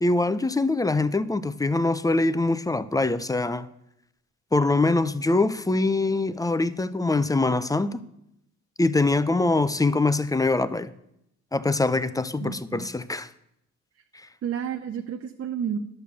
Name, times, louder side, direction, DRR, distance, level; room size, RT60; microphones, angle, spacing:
voice 1, 0.0-3.7 4.5-8.0 8.8-10.9 11.5-13.3 14.1-14.3, left 2 dB, 10° left, 0.5 m, -23 dB
voice 2, 12.4-12.9 14.4-15.8, right 8 dB, 50° right, 0.7 m, -31 dB
11.0 x 6.7 x 6.9 m
cardioid pair, 90°, 30 cm